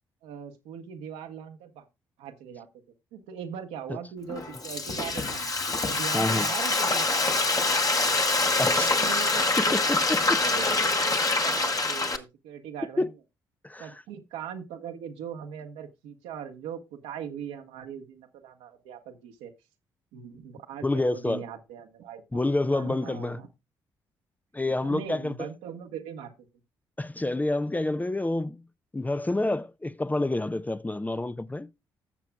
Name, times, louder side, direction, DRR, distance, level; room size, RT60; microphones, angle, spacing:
voice 1, 0.2-1.9 2.2-2.7 3.1-5.6 5.8-8.1 8.8-13.1 13.8-19.5 20.1-22.4 22.7-23.5 24.6-26.3, right 8 dB, 75° right, 1.3 m, -40 dB
Frying (food), 4.3-12.2, left 3 dB, 35° left, 1.3 m, -25 dB
voice 2, 6.1-6.5 8.6-8.9 9.6-10.4 13.0-13.1 13.6-14.0 20.8-21.4 22.3-23.4 24.5-25.5 27.0-28.6 28.9-31.7, left 2 dB, 15° left, 0.5 m, -28 dB
15.5 x 6.9 x 2.3 m
hypercardioid pair, 45°, 11 cm